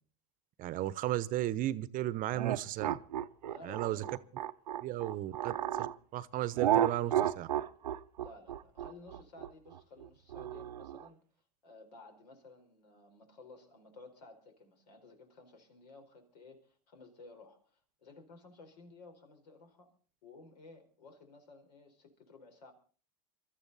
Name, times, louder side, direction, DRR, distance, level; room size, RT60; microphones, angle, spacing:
voice 1, 0.6-3.0 3.6-4.0 4.8-7.5, right 14 dB, 40° right, 18 dB, 0.8 m, -35 dB
sound 1, 2.3-5.9 6.6-11.1, right 11 dB, 90° right, 0.8 m, -33 dB
voice 2, 3.5-4.3 8.2-11.2 11.6-19.9 20.2-22.7, left 3 dB, 80° left, 5 dB, 4.5 m, -55 dB
24.0 x 13.0 x 4.1 m, 0.42 s
hypercardioid pair, 105°, 21 cm